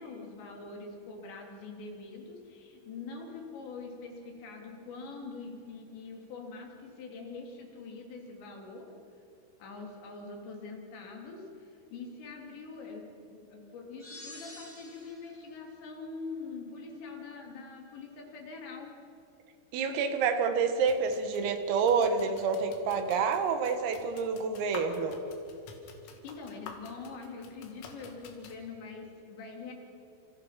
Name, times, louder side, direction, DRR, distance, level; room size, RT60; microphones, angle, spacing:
voice 1, 0.0-8.9 9.6-18.9 26.2-29.7, left 4 dB, 60° left, 1 dB, 5.2 m, -44 dB
sound 1, 14.0-15.4, left 1 dB, 5° left, 6.3 m, -48 dB
voice 2, 19.7-25.2, right 5 dB, 85° right, 7 dB, 4.4 m, -28 dB
sound 2, 20.8-28.6, left 5 dB, 80° left, 4.9 m, -50 dB
29.0 x 28.5 x 5.9 m, 2.8 s
omnidirectional pair, 5.9 m